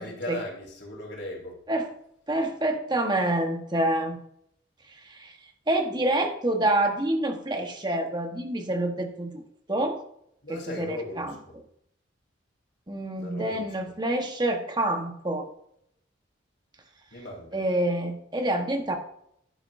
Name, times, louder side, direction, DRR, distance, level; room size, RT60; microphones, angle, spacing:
voice 1, 0.0-1.6 10.4-11.4 13.2-13.9 17.1-17.5, left 1 dB, 70° left, -2 dB, 3.8 m, -37 dB
voice 2, 2.3-4.2 5.1-5.3 5.7-9.4 9.7-10.0 10.5-11.4 12.9-15.5 17.5-19.0, right 1 dB, 25° right, 4 dB, 1.3 m, -27 dB
11.0 x 9.7 x 2.7 m, 0.72 s
head